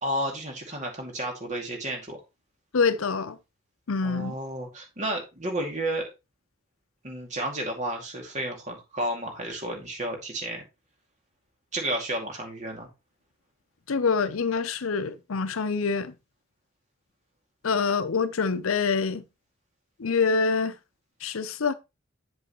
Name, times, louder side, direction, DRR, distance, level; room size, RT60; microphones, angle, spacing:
voice 1, 0.0-2.2 4.0-6.1 7.0-10.6 11.7-12.9, right 1 dB, 35° right, 2.4 m, -32 dB
voice 2, 2.7-3.4 3.9-4.3 13.9-16.1 17.6-19.2 20.0-20.7 21.2-21.7, left 5 dB, 90° left, 0.7 m, -25 dB
7.7 x 7.7 x 3.0 m
head